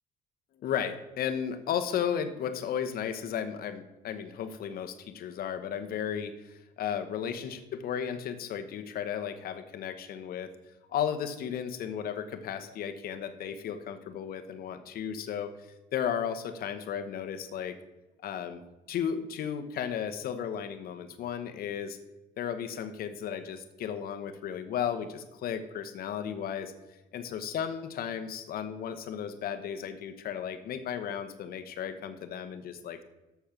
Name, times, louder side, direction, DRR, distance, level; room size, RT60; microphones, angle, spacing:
voice 1, 0.5-10.5 10.9-17.8 18.2-18.6 18.9-22.0 22.4-26.7 27.1-33.0, left 8 dB, 60° left, 9 dB, 1.0 m, -34 dB
7.0 x 6.7 x 5.9 m, 1.1 s
cardioid pair, 110°, 17 cm